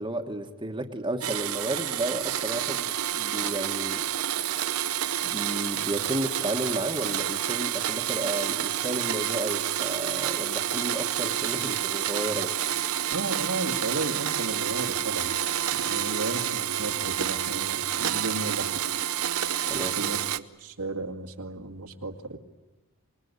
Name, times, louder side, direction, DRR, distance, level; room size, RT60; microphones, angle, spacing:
voice 1, 0.0-4.0 5.2-12.5 19.7-19.9, right 1 dB, 20° right, 3 dB, 1.4 m, -32 dB
Domestic sounds home sounds, 1.2-20.4, right 10 dB, 70° right, 0.8 m, -29 dB
voice 2, 13.1-15.4 15.7-18.7 19.7-22.4, right 2 dB, 90° right, 3 dB, 2.3 m, -34 dB
26.0 x 21.0 x 9.6 m, 1.1 s
head